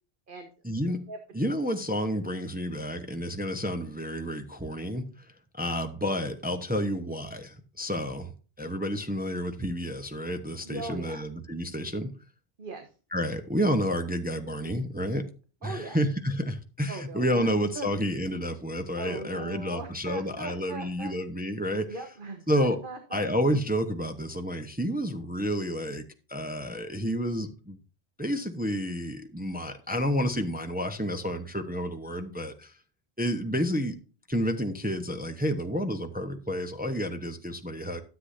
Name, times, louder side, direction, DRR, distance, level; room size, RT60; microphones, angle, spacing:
voice 1, 0.6-1.1 1.3-5.3 5.5-8.3 8.6-12.1 13.1-15.3 15.6-21.9 22.5-22.8 23.1-27.8 28.2-32.7 33.2-34.0 34.3-38.0, equal, 10° right, 0.9 m, -30 dB
voice 2, 10.6-11.3 12.6-12.9 15.6-16.0 16.9-17.9 19.0-21.1 21.9-23.2, right 3 dB, 55° right, 1.5 m, -39 dB
13.0 x 8.1 x 2.7 m
omnidirectional pair, 1.1 m